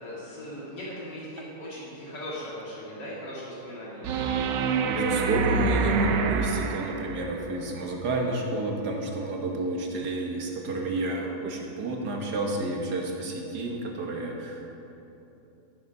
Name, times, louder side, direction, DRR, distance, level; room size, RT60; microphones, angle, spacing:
voice 1, 0.0-4.2, equal, 80° left, -8 dB, 3.0 m, -39 dB
sound 1, 4.0-7.4 10.0-10.1, right 5 dB, 85° right, 1.4 m, -27 dB
voice 2, 4.8-14.8, right 2 dB, 70° right, 1 dB, 1.9 m, -30 dB
13.5 x 7.1 x 5.4 m, 2.9 s
omnidirectional pair, 1.9 m